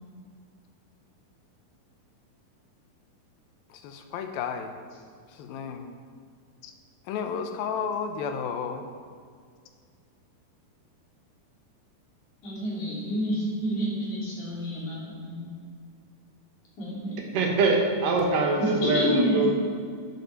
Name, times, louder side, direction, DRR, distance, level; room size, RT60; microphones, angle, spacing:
voice 1, 3.7-4.7 5.3-5.9 6.6-6.7 7.1-8.9, left 6 dB, 80° left, 6 dB, 2.6 m, -32 dB
voice 2, 12.4-15.5 16.8-17.2 18.6-19.5, left 1 dB, 55° left, -6 dB, 4.3 m, -29 dB
voice 3, 17.3-19.5, right 3 dB, 70° right, 1 dB, 2.9 m, -23 dB
11.0 x 8.0 x 4.7 m, 2.1 s
omnidirectional pair, 4.3 m